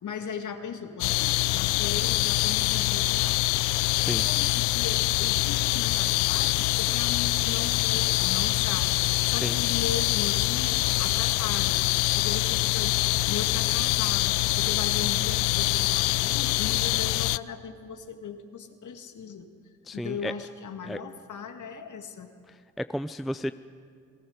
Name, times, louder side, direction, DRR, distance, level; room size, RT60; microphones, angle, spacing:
voice 1, 0.0-3.4 4.0-9.0 9.2-11.8 12.2-12.9 13.2-19.5 19.9-22.3, left 6 dB, 50° left, 6 dB, 2.1 m, -37 dB
sound 1, 1.0-17.4, left 21 dB, 75° left, 0.5 m, -25 dB
voice 2, 19.9-20.3 20.9-21.0 22.8-23.5, equal, ahead, 13 dB, 0.5 m, -32 dB
28.5 x 19.0 x 5.1 m, 2.3 s
hypercardioid pair, 55°, 38 cm